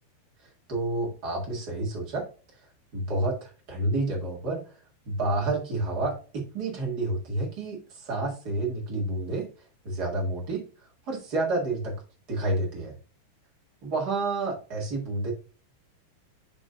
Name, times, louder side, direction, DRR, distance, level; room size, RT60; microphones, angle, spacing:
voice 1, 0.7-2.2 2.9-4.6 5.0-9.4 9.8-10.6 11.1-11.9 12.3-12.9 13.8-15.3, right 2 dB, 55° right, -2 dB, 1.0 m, -29 dB
10.0 x 5.3 x 2.5 m, 0.35 s
omnidirectional pair, 5.1 m